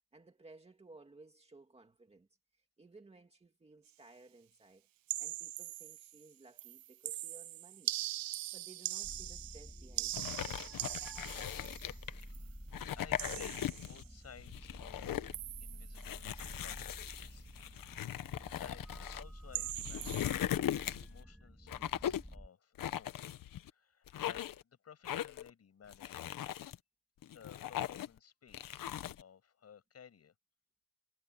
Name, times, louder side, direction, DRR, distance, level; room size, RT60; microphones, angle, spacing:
voice 1, 0.1-2.3 2.8-4.9 5.2-7.9 8.5-10.8, right 3 dB, 15° right, 2.2 m, -59 dB
sound 1, 5.1-6.3 6.6-12.5 13.2-14.1 15.3-16.0 16.4-16.7 16.9-17.2 19.5-20.4, right 15 dB, 70° right, 0.5 m, -42 dB
sound 2, 9.0-22.5, equal, ahead, 2.3 m, -50 dB
sound 3, 10.1-12.2 12.7-14.0 14.4-15.4 15.9-19.2 19.7-21.2 21.7-22.3 22.8-23.7 24.1-24.6 25.0-25.5 25.9-26.8 27.2-28.2 28.5-29.2, left 11 dB, 65° left, 1.0 m, -39 dB
voice 2, 12.3-15.2 15.6-17.5 18.1-23.2 23.6-26.5 27.2-30.3, left 7 dB, 40° left, 7.5 m, -58 dB
wide cardioid pair, 175°, 36 cm